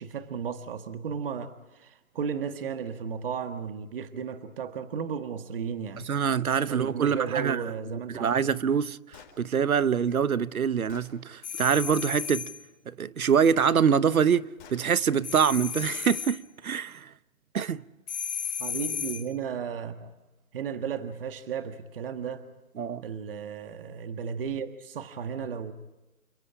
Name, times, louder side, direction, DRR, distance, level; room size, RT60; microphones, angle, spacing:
voice 1, 0.0-6.0 6.7-8.6 18.6-20.1 20.5-22.4 23.0-25.7, right 7 dB, 40° right, 1.6 m, -34 dB
voice 2, 6.0-7.6 8.1-12.5 12.9-17.1 17.5-17.8 22.8-23.0, right 7 dB, 85° right, 1.1 m, -25 dB
Gunshot gunfire, 9.1-9.4 10.3-10.4 10.9-11.1 13.6-13.8 14.6-14.8, left 7 dB, 35° left, 4.5 m, -49 dB
sound 1, 11.4-12.6 15.2-16.4 18.1-19.3, left 8 dB, 50° left, 1.7 m, -34 dB
29.0 x 26.0 x 4.9 m
hypercardioid pair, 160°, 42 cm